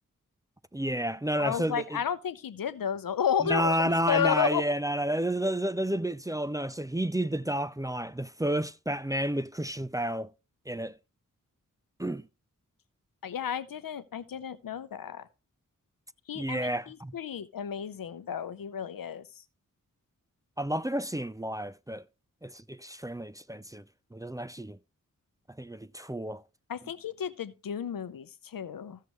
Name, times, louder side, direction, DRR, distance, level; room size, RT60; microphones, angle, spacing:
voice 1, 0.7-2.0 3.4-10.3 10.7-10.9 12.0-12.3 16.4-17.1 20.6-22.0 22.4-23.8 24.1-24.8 25.6-26.4, right 1 dB, 10° right, 0.4 m, -31 dB
voice 2, 1.4-4.6 13.2-15.3 16.3-19.2 26.7-29.0, left 8 dB, 90° left, 0.7 m, -32 dB
15.0 x 6.7 x 3.1 m
wide cardioid pair, 60°, 33 cm